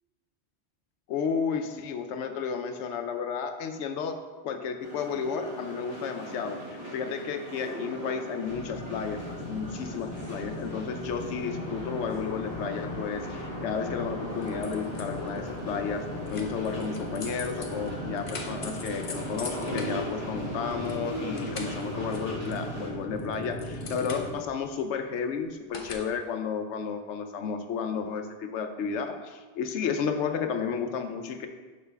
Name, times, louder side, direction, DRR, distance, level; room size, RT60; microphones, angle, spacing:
voice 1, 1.1-4.2 4.4-31.5, left 6 dB, 85° left, 7 dB, 0.9 m, -32 dB
sound 1, 4.8-22.9, right 1 dB, 35° right, 1.9 m, -40 dB
sound 2, 8.5-24.4, left 1 dB, 65° left, 1.2 m, -38 dB
sound 3, 14.3-15.4 16.3-21.0 21.2-22.8 23.2-24.6 25.7-25.9, left 3 dB, 35° left, 0.6 m, -42 dB
6.6 x 5.7 x 3.4 m, 1.3 s
omnidirectional pair, 1.2 m